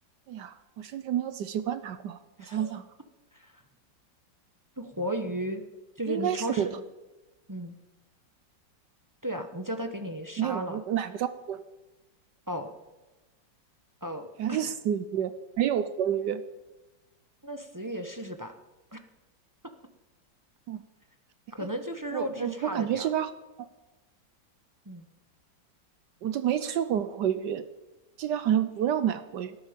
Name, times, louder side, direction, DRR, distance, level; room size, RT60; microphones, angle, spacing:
voice 1, 0.3-2.8 6.1-6.7 10.4-11.6 14.4-16.4 20.7-20.8 22.1-23.3 23.6-23.7 26.2-27.6 28.2-29.6, right 10 dB, 70° right, 12 dB, 1.2 m, -29 dB
voice 2, 2.4-2.7 3.3-3.6 4.8-5.6 6.0-6.8 7.5-7.7 9.2-10.8 12.5-12.7 14.0-14.6 17.4-18.5 18.9-19.0 21.5-23.1 24.8-25.1, equal, 20° right, 6 dB, 0.5 m, -34 dB
19.0 x 13.0 x 5.2 m, 1.1 s
omnidirectional pair, 2.1 m